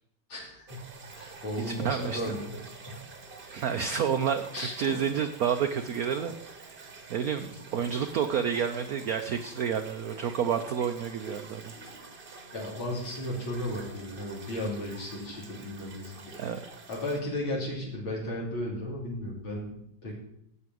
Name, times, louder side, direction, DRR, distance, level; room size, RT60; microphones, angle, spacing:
voice 1, 0.3-0.9 1.2-2.5 2.9-3.0 4.5-4.7 11.7-11.9 12.5-16.1 16.9-20.2, left 1 dB, 75° left, -4 dB, 3.6 m, -35 dB
sound 1, 0.7-17.2, right 4 dB, 35° right, 1.0 m, -47 dB
voice 2, 1.6-2.4 3.5-6.8 7.1-11.7 16.4-16.6, right 7 dB, 75° right, 7 dB, 0.8 m, -30 dB
8.4 x 7.7 x 7.7 m, 0.75 s
omnidirectional pair, 2.2 m